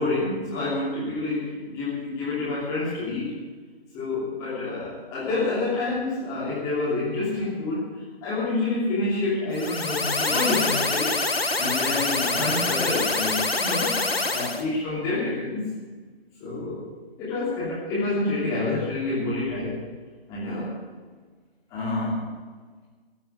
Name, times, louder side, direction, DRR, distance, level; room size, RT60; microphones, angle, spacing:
voice 1, 0.0-3.4 3.9-11.2 11.6-13.9 14.3-15.7 16.4-16.8 17.2-19.8 20.3-20.7 21.7-22.3, left 2 dB, 10° left, -8 dB, 2.9 m, -28 dB
sound 1, 9.5-14.6, left 3 dB, 75° left, 1.4 m, -25 dB
15.0 x 7.3 x 9.6 m, 1.5 s
figure-of-eight pair, 150°, 31 cm